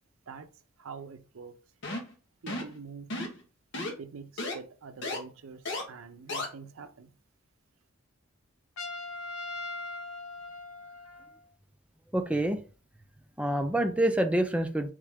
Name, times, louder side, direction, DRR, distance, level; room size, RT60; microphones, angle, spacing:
voice 1, 0.8-1.6 2.4-3.1 4.0-7.1, right 5 dB, 75° right, 0.5 m, -45 dB
sound 1, 1.8-2.1 2.5-2.7 3.1-3.4 3.7-3.9 4.4-4.5 5.0-5.2 5.7-5.8 6.3-6.5, left 2 dB, 60° left, 1.1 m, -33 dB
Trumpet, 8.8-11.4, left 2 dB, 85° left, 0.6 m, -40 dB
voice 2, 12.1-12.6 13.4-14.9, right 1 dB, 5° right, 0.4 m, -27 dB
3.6 x 3.3 x 3.5 m
head